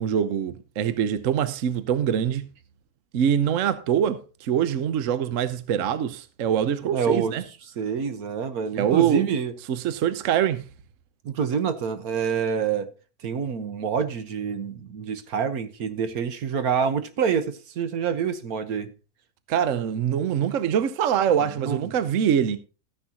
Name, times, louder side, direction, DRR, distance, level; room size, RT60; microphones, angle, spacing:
voice 1, 0.0-2.5 3.1-7.4 8.8-9.2 9.7-10.6 19.5-22.6, right 9 dB, 65° right, 1.1 m, -24 dB
voice 2, 6.9-7.3 7.8-9.5 11.2-12.9 13.2-18.9 21.3-21.9, right 7 dB, 80° right, 1.5 m, -27 dB
14.0 x 10.0 x 2.8 m
omnidirectional pair, 1.5 m